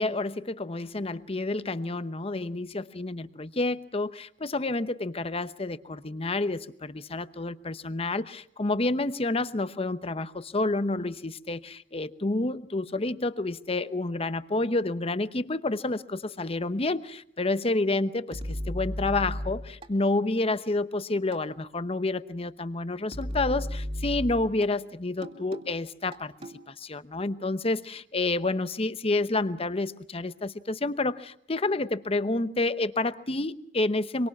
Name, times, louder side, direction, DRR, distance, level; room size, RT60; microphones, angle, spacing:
voice 1, 0.0-18.4 18.7-26.3 26.7-34.3, left 2 dB, 35° left, 0.9 m, -29 dB
sound 1, 18.3-19.9 21.3-21.4 23.1-24.7 25.2-25.7 26.1-26.6, equal, 35° right, 2.6 m, -34 dB
26.0 x 23.5 x 6.0 m
head